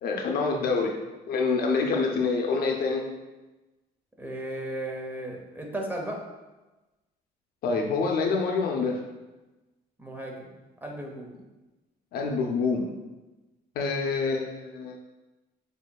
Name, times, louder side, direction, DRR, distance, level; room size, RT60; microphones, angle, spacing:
voice 1, 0.0-0.9 1.3-3.0 7.6-9.0 12.1-12.9 13.8-15.0, left 4 dB, 65° left, 2 dB, 0.6 m, -26 dB
voice 2, 4.2-6.2 10.0-10.4 10.8-11.3, right 1 dB, 10° right, 0 dB, 0.7 m, -35 dB
6.4 x 2.7 x 2.3 m, 1.1 s
cardioid pair, 110°, 17 cm